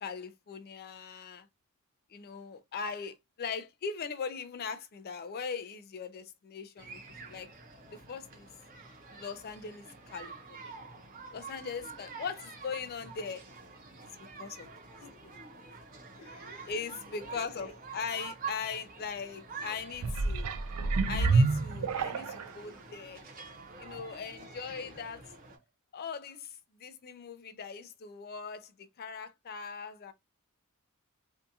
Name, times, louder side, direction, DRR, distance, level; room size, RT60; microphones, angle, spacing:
voice 1, 0.0-1.5 2.1-7.5 7.9-8.5 9.1-10.7 11.3-13.4 14.2-14.7 16.7-20.5 21.1-23.2 23.8-25.2 25.9-30.1, left 5 dB, 45° left, 0.4 m, -40 dB
sound 1, 6.8-25.6, right 5 dB, 40° right, 0.7 m, -47 dB
voice 2, 15.0-15.4 16.2-16.7 17.2-17.7 24.7-25.1, left 3 dB, 85° left, 1.0 m, -55 dB
sound 2, 19.9-22.6 23.2-23.3, right 3 dB, 90° right, 0.4 m, -28 dB
2.6 x 2.3 x 2.6 m
head